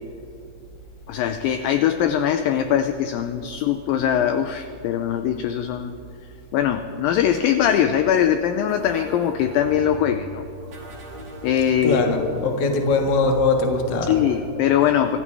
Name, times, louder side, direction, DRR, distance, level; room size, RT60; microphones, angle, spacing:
voice 1, 1.1-6.0 6.5-10.4 11.4-12.2 14.1-15.2, left 9 dB, 85° left, 8 dB, 2.0 m, -21 dB
sound 1, 8.7-14.4, right 1 dB, 45° right, 4.0 m, -39 dB
voice 2, 11.8-14.2, left 3 dB, 50° left, 2 dB, 1.4 m, -21 dB
25.0 x 14.5 x 3.5 m, 2.7 s
omnidirectional pair, 4.6 m